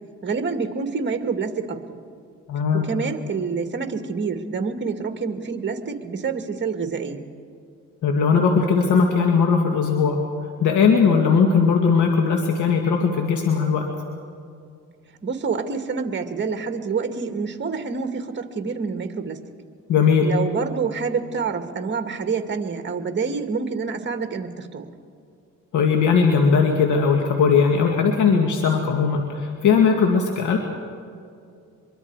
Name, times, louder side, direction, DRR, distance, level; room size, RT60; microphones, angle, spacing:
voice 1, 0.2-2.0 2.7-7.2 15.2-19.4 20.2-24.9, right 5 dB, 40° right, 6 dB, 2.1 m, -27 dB
voice 2, 2.5-2.9 8.0-10.2 10.6-13.8 19.9-20.3 25.7-30.6, left 5 dB, 80° left, 2 dB, 2.1 m, -19 dB
25.0 x 23.0 x 4.8 m, 2.5 s
cardioid pair, 90°, 30 cm